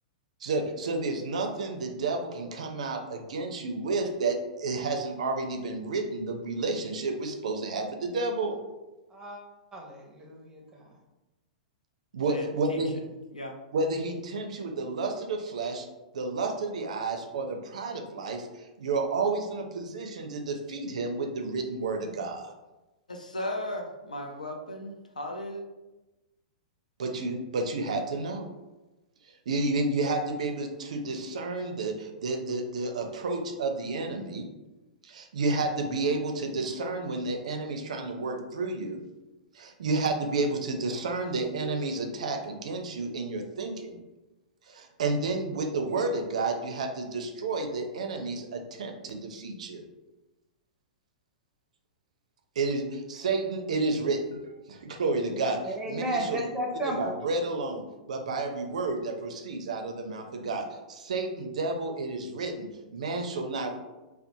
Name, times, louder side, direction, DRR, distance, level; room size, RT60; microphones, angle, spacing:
voice 1, 0.4-8.6 12.1-13.0 13.7-15.9 16.1-22.5 27.0-28.5 29.5-34.5 35.0-39.0 39.5-44.0 44.7-49.8 52.6-54.4 54.7-56.5 56.8-57.8 58.1-63.7, right 3 dB, 65° right, 4 dB, 0.4 m, -31 dB
voice 2, 9.7-10.6 55.6-57.1, right 1 dB, 15° right, 0 dB, 0.6 m, -33 dB
voice 3, 12.3-12.8 13.3-13.5 23.1-25.6, left 1 dB, 85° left, 3 dB, 0.4 m, -36 dB
2.8 x 2.0 x 2.6 m, 1.1 s
figure-of-eight pair, 105°, 4 cm